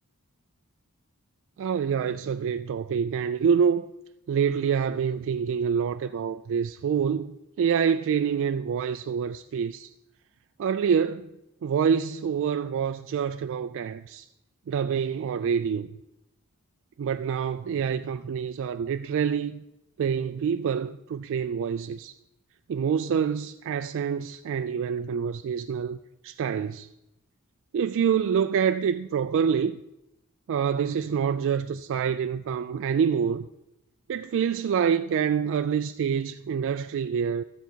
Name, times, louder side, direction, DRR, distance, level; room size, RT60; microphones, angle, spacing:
voice 1, 1.6-3.9 4.3-9.9 10.6-11.2 11.6-14.3 14.7-15.9 17.0-19.6 20.0-22.1 22.7-26.0 26.2-26.9 27.7-29.8 30.5-33.5 34.1-37.4, right 7 dB, 60° right, 0.3 m, -26 dB
12.5 x 9.3 x 4.5 m
head